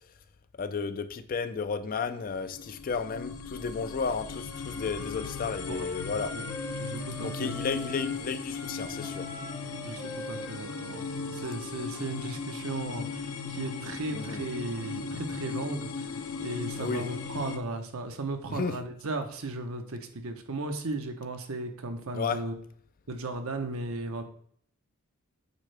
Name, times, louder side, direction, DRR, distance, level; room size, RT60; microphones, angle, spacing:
voice 1, 0.6-6.3 7.2-9.3 14.1-14.4 16.8-17.1 18.5-18.8 22.1-22.4, left 5 dB, 40° left, 11 dB, 0.4 m, -33 dB
sound 1, 2.3-17.6, left 4 dB, 65° left, 0.7 m, -37 dB
Wind instrument woodwind instrument, 4.4-8.2 8.5-12.4, left 2 dB, 20° left, 1.8 m, -43 dB
voice 2, 6.8-7.6 9.8-10.0 10.3-11.1 11.3-16.1 16.4-22.5 23.1-24.2, right 2 dB, 65° right, 6 dB, 0.8 m, -36 dB
8.2 x 4.5 x 3.3 m, 0.62 s
head